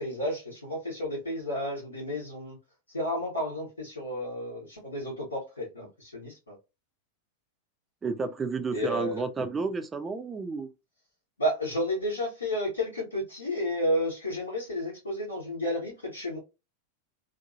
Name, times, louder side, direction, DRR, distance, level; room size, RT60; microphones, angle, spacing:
voice 1, 0.0-2.6 2.9-6.5 8.7-9.2 11.4-16.4, equal, 75° left, 1.0 m, -31 dB
voice 2, 8.0-10.7, right 4 dB, 15° right, 0.4 m, -31 dB
2.7 x 2.4 x 2.5 m
figure-of-eight pair, 90°, 0 cm